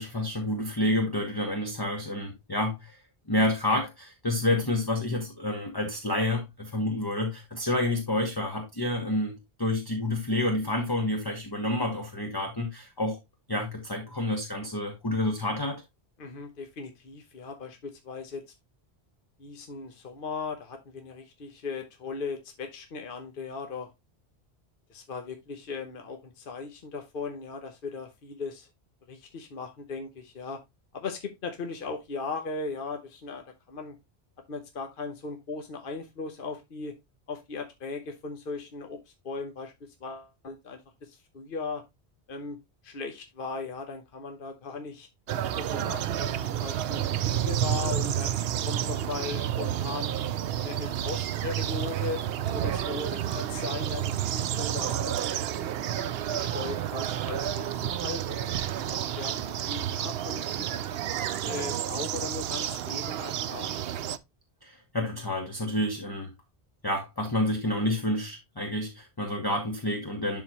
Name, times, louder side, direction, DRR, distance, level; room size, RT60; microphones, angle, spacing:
voice 1, 0.0-3.0 3.3-13.2 13.5-15.8 64.6-66.3 66.8-70.4, left 1 dB, 20° left, 1.1 m, -29 dB
voice 2, 16.2-18.4 19.4-23.9 24.9-28.7 29.1-30.6 30.9-34.0 34.5-36.9 37.3-41.8 42.3-42.6 42.8-45.1 45.6-50.1 50.6-52.3 52.5-55.7 56.0-57.7 58.0-58.5 58.8-60.5 61.4-64.0, left 4 dB, 55° left, 1.1 m, -38 dB
sound 1, 45.3-64.2, right 11 dB, 70° right, 0.8 m, -30 dB
11.0 x 4.1 x 2.9 m
omnidirectional pair, 1.1 m